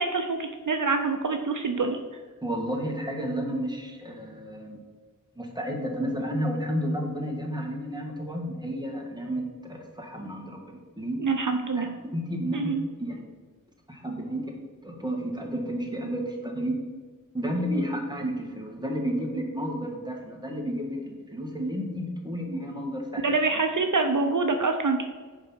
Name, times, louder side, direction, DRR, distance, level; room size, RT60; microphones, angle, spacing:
voice 1, 0.0-2.0 11.2-11.9 12.5-12.8 23.2-25.0, right 4 dB, 65° right, 5 dB, 0.6 m, -25 dB
voice 2, 2.4-4.8 5.4-11.2 11.7-13.2 13.9-14.5 14.8-16.7 17.3-23.4, equal, 10° right, 0 dB, 1.8 m, -31 dB
7.1 x 5.3 x 5.7 m, 1.4 s
wide cardioid pair, 55°, 33 cm